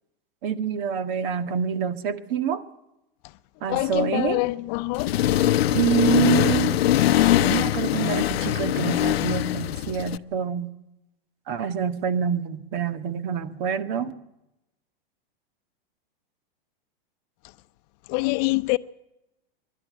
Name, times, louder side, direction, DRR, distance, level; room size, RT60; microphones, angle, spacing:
voice 1, 0.4-2.6 3.6-4.4 5.7-6.8 7.4-10.7 11.5-14.1, right 7 dB, 55° right, 1.7 m, -26 dB
voice 2, 3.7-5.1 18.1-18.8, left 23 dB, 45° left, 0.7 m, -25 dB
Accelerating revving vroom, 5.0-10.2, left 13 dB, 85° left, 0.7 m, -22 dB
24.5 x 12.0 x 9.5 m
hypercardioid pair, 125°, 30 cm